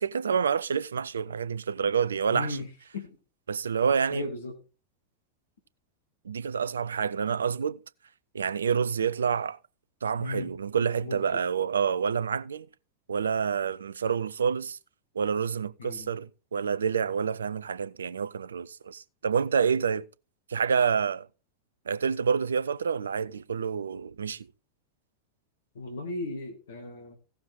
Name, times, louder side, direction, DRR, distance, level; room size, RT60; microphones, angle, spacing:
voice 1, 0.0-2.6 3.5-4.3 6.2-7.8 8.3-9.6 10.0-12.7 13.1-14.8 15.2-20.1 20.5-21.3 21.9-24.5, right 6 dB, 70° right, 0.4 m, -28 dB
voice 2, 2.3-3.2 4.1-4.6 10.2-10.5 10.8-11.4 15.8-16.1 25.7-27.1, left 2 dB, 65° left, 2.0 m, -37 dB
16.0 x 6.9 x 3.7 m
figure-of-eight pair, 90°, 0 cm